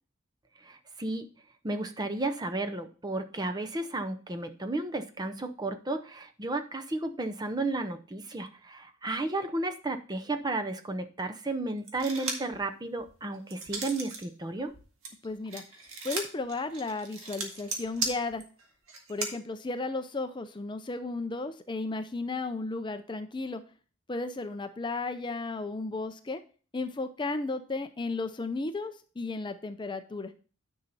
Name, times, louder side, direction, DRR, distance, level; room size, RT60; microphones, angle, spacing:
voice 1, 0.6-1.3 1.6-14.7, right 2 dB, 20° right, 7 dB, 0.7 m, -33 dB
sound 1, 11.9-12.6 13.0-14.2 14.6-19.3, right 4 dB, 80° right, 1.9 m, -36 dB
voice 2, 15.2-15.6 16.0-18.4 19.1-23.6 24.1-26.4 26.7-30.3, left 3 dB, 20° left, 9 dB, 0.5 m, -34 dB
9.9 x 5.7 x 4.0 m, 0.38 s
head